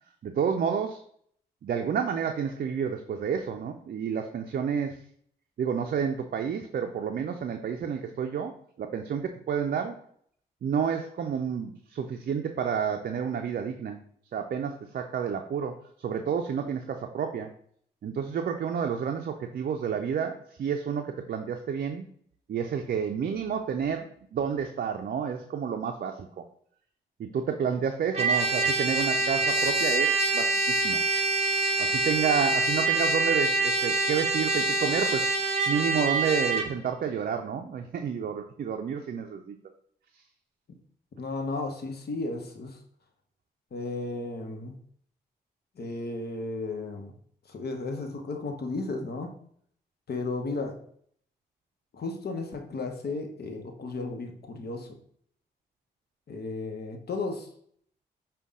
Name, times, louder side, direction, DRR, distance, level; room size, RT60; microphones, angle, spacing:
voice 1, 0.2-1.0 1.6-5.0 5.6-10.0 10.6-14.0 14.3-17.5 18.0-22.1 22.5-26.4 27.2-31.0 31.8-35.3 35.7-39.6, right 7 dB, 50° right, 4 dB, 0.4 m, -30 dB
Trumpet, 28.1-36.7, right 2 dB, 35° right, 0.8 m, -25 dB
voice 2, 41.2-42.8 43.7-44.8 45.8-47.1 47.5-49.3 50.1-50.8 51.9-55.0 56.3-57.5, left 3 dB, 55° left, 5 dB, 0.9 m, -34 dB
5.2 x 2.3 x 3.6 m, 0.63 s
supercardioid pair, 40°, 20 cm